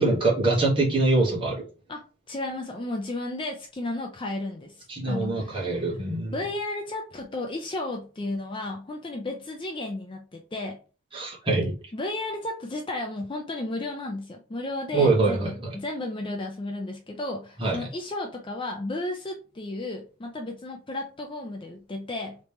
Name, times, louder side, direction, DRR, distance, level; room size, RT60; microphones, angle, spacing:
voice 1, 0.0-1.6 4.9-6.4 11.1-11.8 14.9-15.7 17.6-17.9, right 2 dB, 25° right, -4 dB, 1.2 m, -24 dB
voice 2, 2.3-4.8 5.1-5.8 6.3-10.8 11.9-22.4, left 2 dB, 25° left, 2 dB, 0.4 m, -33 dB
3.0 x 2.9 x 3.4 m, 0.35 s
head